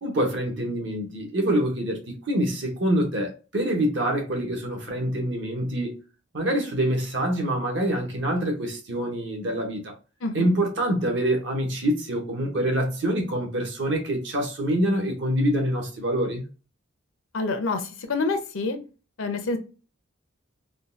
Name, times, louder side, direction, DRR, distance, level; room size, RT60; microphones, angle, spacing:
voice 1, 0.0-6.0 6.3-9.9 10.3-16.4, right 1 dB, 60° right, 1.0 m, -25 dB
voice 2, 17.3-18.8 19.2-19.6, left 3 dB, 80° left, 0.7 m, -27 dB
3.7 x 2.3 x 2.5 m
head